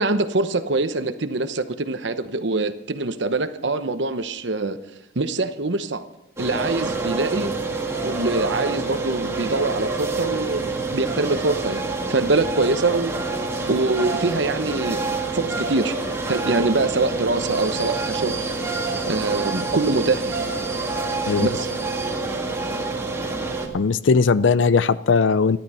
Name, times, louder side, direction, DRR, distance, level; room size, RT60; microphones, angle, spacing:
voice 1, 0.0-4.8 5.1-6.1 6.4-7.5 8.0-13.1 13.7-15.0 15.3-15.9 16.3-18.4 19.1-20.4 21.4-21.7, right 3 dB, 70° right, 1.0 m, -24 dB
sound 1, 6.4-23.7, right 3 dB, 15° right, 1.9 m, -27 dB
voice 2, 23.7-25.6, left 5 dB, 80° left, 0.5 m, -18 dB
13.5 x 12.0 x 5.6 m
head